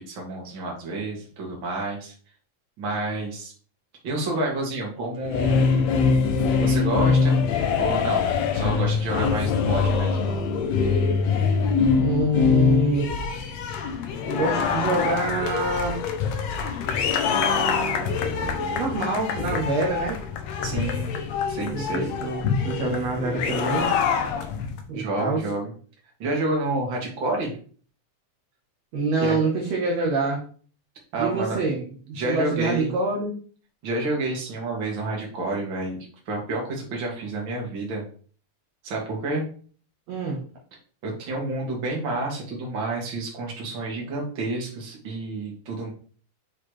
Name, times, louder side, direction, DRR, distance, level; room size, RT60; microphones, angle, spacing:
voice 1, 0.0-2.1 2.8-3.5 4.0-5.7 6.6-7.4 7.8-8.3 8.5-10.2 20.6-21.2 21.5-22.1 24.9-25.7 26.2-27.5 29.2-29.4 31.1-31.6 32.1-32.9 33.8-36.0 36.3-38.0 38.8-39.4 41.0-45.9, right 2 dB, 40° right, -2 dB, 2.2 m, -29 dB
sound 1, 5.2-24.8, left 5 dB, 90° left, 1.5 m, -24 dB
voice 2, 12.0-13.1 14.2-16.0 17.3-20.2 21.7-24.0 24.9-25.4 28.9-30.4 31.2-33.4 40.1-40.4, right 2 dB, 60° right, -3 dB, 2.0 m, -26 dB
8.3 x 4.1 x 3.2 m, 0.43 s
omnidirectional pair, 4.0 m